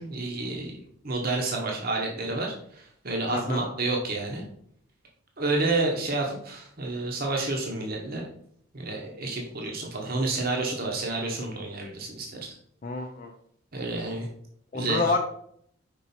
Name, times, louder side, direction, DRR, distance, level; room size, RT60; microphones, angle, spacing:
voice 1, 0.0-4.4 5.4-8.3 8.7-12.5 13.7-14.3 14.7-15.0, right 2 dB, 45° right, 0 dB, 1.0 m, -30 dB
voice 2, 3.3-3.7 12.8-13.4 14.7-15.2, left 3 dB, 35° left, 3 dB, 0.5 m, -28 dB
5.3 x 4.4 x 4.3 m, 0.67 s
head